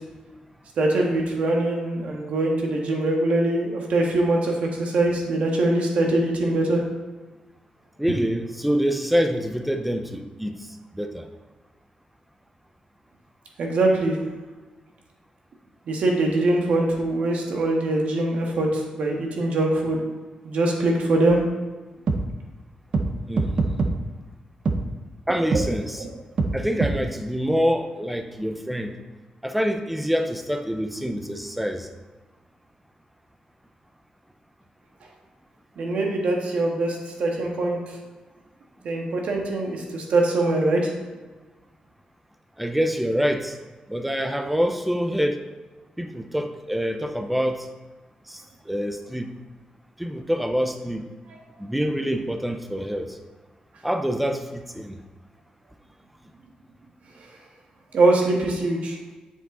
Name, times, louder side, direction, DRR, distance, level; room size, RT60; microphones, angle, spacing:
voice 1, 0.8-4.5 4.8-6.8 13.6-14.1 15.9-20.0 20.4-21.4 26.0-26.1 35.8-37.8 38.8-40.8 57.9-59.0, right 2 dB, 60° right, 0 dB, 1.5 m, -22 dB
voice 2, 8.0-10.6 11.0-11.3 23.3-23.6 25.3-26.0 26.5-29.0 29.4-31.9 42.6-43.5 43.9-45.4 46.0-47.7 48.3-49.3 50.0-51.0 51.6-53.2 53.8-55.0, equal, 5° right, 6 dB, 0.5 m, -26 dB
sound 1, 21.3-21.4 22.1-22.2 22.9-23.1 23.4-23.9 24.7-24.8 25.5-25.6 26.4-26.5 26.8-26.9, right 3 dB, 45° right, 0.6 m, -22 dB
7.7 x 6.7 x 3.8 m, 1.3 s
wide cardioid pair, 175°, 2 cm